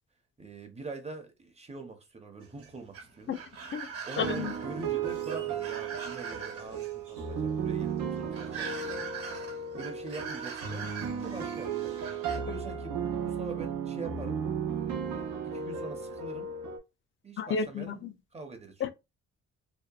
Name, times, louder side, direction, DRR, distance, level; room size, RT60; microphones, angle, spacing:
voice 1, 0.4-3.4 4.0-9.1 9.7-11.8 12.3-14.4 14.7-16.5 17.2-18.8, right 3 dB, 20° right, 0.7 m, -44 dB
sound 1, 2.4-12.4, right 6 dB, 50° right, 1.0 m, -42 dB
voice 2, 4.2-4.5 17.4-18.1 18.8-18.9, left 6 dB, 40° left, 0.4 m, -31 dB
sound 2, 4.2-16.8, right 6 dB, 85° right, 0.7 m, -35 dB
2.8 x 2.1 x 2.3 m
cardioid pair, 90°, 30 cm